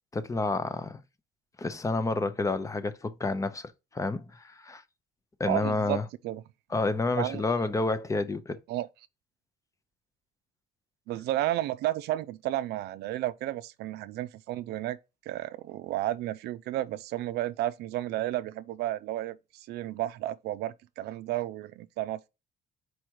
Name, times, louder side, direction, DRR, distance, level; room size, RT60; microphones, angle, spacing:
voice 1, 0.1-1.0 1.6-4.8 5.4-6.0 6.7-8.6, left 3 dB, 20° left, 0.6 m, -29 dB
voice 2, 5.5-6.4 7.1-7.4 8.7-8.9 11.1-15.0 15.3-22.3, right 14 dB, 75° right, 0.4 m, -32 dB
4.9 x 4.7 x 4.6 m
cardioid pair, 110°, 17 cm